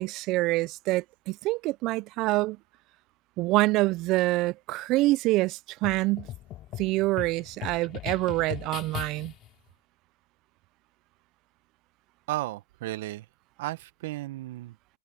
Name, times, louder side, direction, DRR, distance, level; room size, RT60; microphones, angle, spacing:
voice 1, 0.0-2.6 3.4-6.3 6.8-9.3, right 19 dB, 40° right, 0.6 m, -26 dB
sound 1, 5.8-9.5, left 14 dB, 35° left, 4.7 m, -39 dB
voice 2, 12.3-13.2 13.6-14.8, right 17 dB, 60° right, 1.4 m, -34 dB
hypercardioid pair, 120°, 0 cm